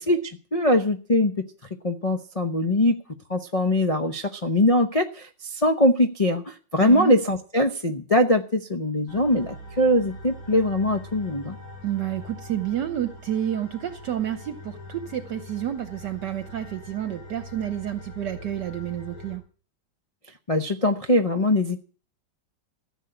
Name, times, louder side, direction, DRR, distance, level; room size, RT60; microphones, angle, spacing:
voice 1, 0.0-1.3 1.8-2.9 3.3-11.6 20.5-21.8, left 1 dB, 65° left, 2 dB, 0.3 m, -22 dB
voice 2, 6.8-7.1 11.8-19.4, right 11 dB, 65° right, 10 dB, 1.4 m, -30 dB
sound 1, 9.1-19.4, left 1 dB, 90° left, 4.0 m, -42 dB
14.5 x 7.3 x 9.0 m, 0.41 s
omnidirectional pair, 2.2 m